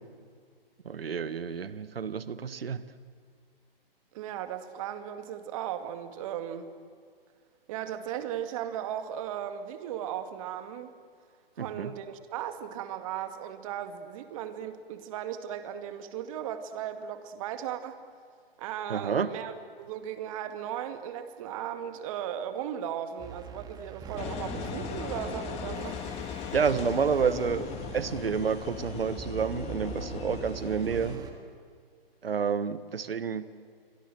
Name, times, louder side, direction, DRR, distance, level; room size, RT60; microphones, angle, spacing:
voice 1, 0.8-2.8 11.6-11.9 18.9-19.3 26.5-31.2 32.2-33.5, right 6 dB, 70° right, 15 dB, 1.5 m, -29 dB
voice 2, 4.1-6.7 7.7-10.9 11.6-18.0 18.6-26.0, right 10 dB, 35° right, 9 dB, 2.1 m, -36 dB
sound 1, 23.2-31.3, right 6 dB, 15° right, 2.2 m, -43 dB
Engine, 24.2-31.2, left 8 dB, 20° left, 2.0 m, -39 dB
28.5 x 24.0 x 7.8 m, 2.1 s
hypercardioid pair, 140°, 30 cm